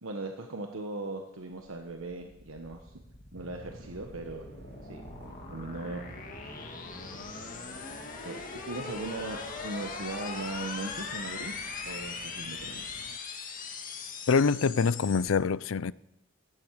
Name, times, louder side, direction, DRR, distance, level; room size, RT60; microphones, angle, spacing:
voice 1, 0.0-3.0 3.3-4.4 4.9-6.0 6.9-7.3 8.2-8.4 8.7-11.5 11.8-12.9, right 2 dB, 90° right, 1.3 m, -39 dB
sound 1, 1.5-15.3, left 4 dB, 40° left, 2.0 m, -41 dB
Bus on Freeway, 3.4-13.2, right 3 dB, 55° right, 0.6 m, -52 dB
voice 2, 14.3-15.9, left 5 dB, 80° left, 0.5 m, -25 dB
17.0 x 14.5 x 4.8 m
head